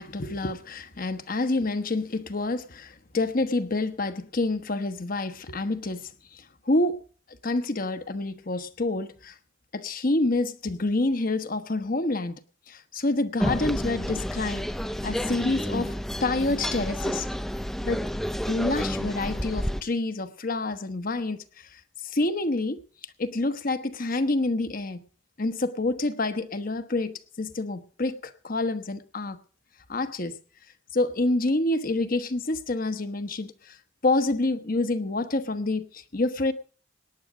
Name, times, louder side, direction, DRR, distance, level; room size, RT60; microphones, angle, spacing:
voice 1, 0.0-7.0 7.4-9.3 9.7-12.4 12.7-14.6 15.0-17.3 17.8-18.0 18.5-22.8 23.2-25.0 25.4-29.4 29.9-30.4 30.9-33.8 34.0-36.5, left 2 dB, 45° left, 1.1 m, -28 dB
sound 1, 13.4-19.8, equal, ahead, 0.6 m, -30 dB
18.5 x 10.0 x 5.0 m
head